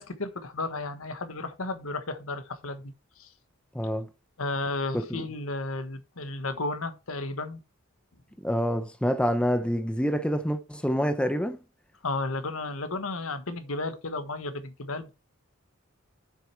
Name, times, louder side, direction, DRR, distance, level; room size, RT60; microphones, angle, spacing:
voice 1, 0.0-3.3 4.4-7.6 12.0-15.1, left 2 dB, 75° left, 1.2 m, -33 dB
voice 2, 3.7-4.1 4.9-5.2 8.4-11.6, equal, 5° left, 0.7 m, -27 dB
7.4 x 6.5 x 4.4 m
head